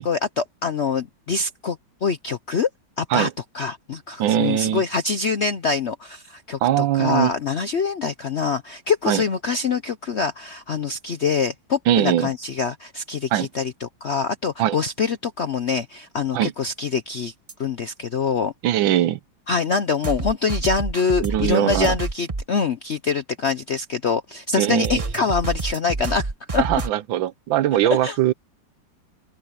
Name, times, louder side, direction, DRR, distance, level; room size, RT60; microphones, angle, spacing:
voice 1, 0.0-2.7 3.0-3.3 3.5-17.3 17.6-18.5 19.5-26.6 28.0-28.2, left 5 dB, 60° left, 0.7 m, -25 dB
voice 2, 4.2-4.8 6.6-7.3 9.1-9.2 11.9-12.3 13.3-13.5 14.6-14.8 16.3-16.5 18.6-19.2 21.2-21.9 24.6-25.0 26.6-28.3, right 12 dB, 80° right, 1.5 m, -21 dB
sound 1, 17.5-17.6 20.0-22.4 24.8-26.9, right 3 dB, 25° right, 0.9 m, -28 dB
open air
omnidirectional pair, 2.1 m